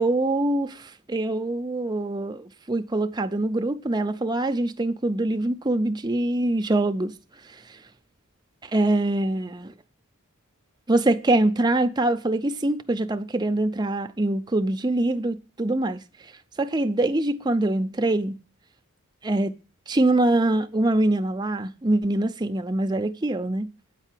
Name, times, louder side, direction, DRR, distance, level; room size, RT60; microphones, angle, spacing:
voice 1, 0.0-7.1 8.6-9.7 10.9-16.0 16.6-18.4 19.2-19.6 19.9-23.7, right 2 dB, 20° right, 0.5 m, -24 dB
8.9 x 4.4 x 7.4 m
head